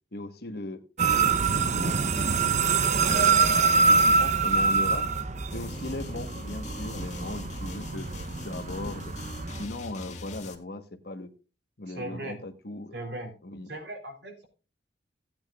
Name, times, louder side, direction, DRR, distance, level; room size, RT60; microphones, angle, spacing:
voice 1, 0.1-5.0 5.5-8.1 8.4-9.2 9.6-11.3 11.8-13.0 13.4-13.7, left 1 dB, 60° left, 8 dB, 1.2 m, -38 dB
sound 1, 1.0-9.6, right 4 dB, 40° right, 0.7 m, -25 dB
sound 2, 5.5-10.5, left 3 dB, 40° left, 1.6 m, -44 dB
voice 2, 11.9-12.4 12.9-13.3 13.7-14.4, right 2 dB, 70° right, 3 dB, 3.6 m, -38 dB
16.0 x 8.8 x 2.4 m, 0.34 s
head